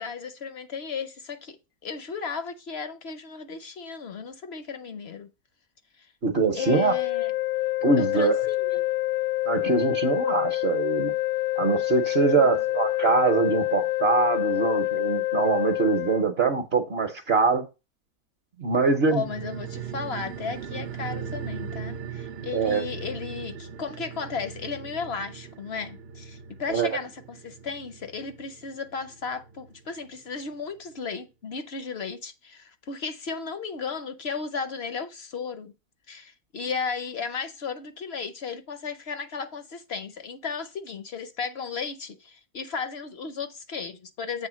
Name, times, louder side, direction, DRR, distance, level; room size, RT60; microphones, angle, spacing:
voice 1, 0.0-1.6 1.8-5.3 6.0-6.1 6.6-7.3 8.0-8.8 19.1-35.7 36.1-44.5, left 5 dB, 55° left, 0.8 m, -35 dB
voice 2, 6.2-6.9 7.8-8.3 9.5-11.1 11.6-17.6 18.6-19.3 22.5-22.8 26.7-26.9, right 4 dB, 50° right, 1.0 m, -23 dB
sound 1, 6.5-16.2, left 18 dB, 70° left, 1.1 m, -27 dB
sound 2, 19.0-29.9 30.2-30.3, right 7 dB, 65° right, 0.6 m, -39 dB
7.7 x 3.5 x 6.1 m
omnidirectional pair, 1.6 m